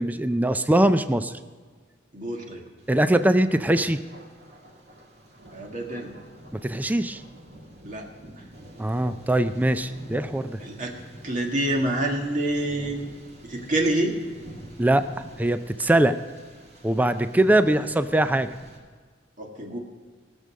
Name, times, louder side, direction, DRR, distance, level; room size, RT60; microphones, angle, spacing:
voice 1, 0.0-1.3 2.9-4.0 6.5-7.2 8.8-10.6 14.8-15.1 15.4-16.2 16.8-18.5, right 1 dB, 10° right, 11 dB, 0.4 m, -22 dB
voice 2, 2.1-2.7 5.5-6.1 7.8-8.1 8.4-8.5 10.6-13.1 13.4-14.1 17.6-17.8 19.4-19.8, right 1 dB, 45° right, 1 dB, 1.7 m, -28 dB
Thunder, 2.8-18.8, equal, 60° right, 2.7 m, -46 dB
18.5 x 6.8 x 6.3 m, 1.5 s
head